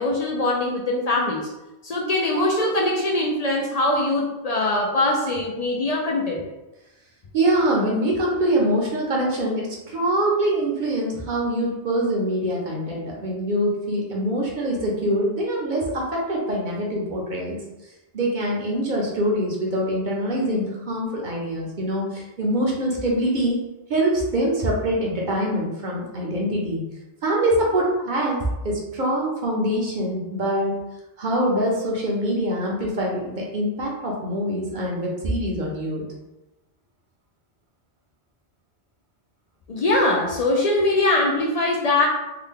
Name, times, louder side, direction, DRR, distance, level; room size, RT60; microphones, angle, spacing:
voice 1, 0.0-1.5 1.8-6.4 39.7-42.1, left 2 dB, 55° left, -1 dB, 0.5 m, -22 dB
voice 2, 7.3-17.6 18.1-23.6 23.9-26.8 27.2-30.7 31.2-36.0, right 1 dB, 50° right, -3 dB, 0.8 m, -24 dB
3.4 x 2.1 x 3.6 m, 0.99 s
omnidirectional pair, 1.1 m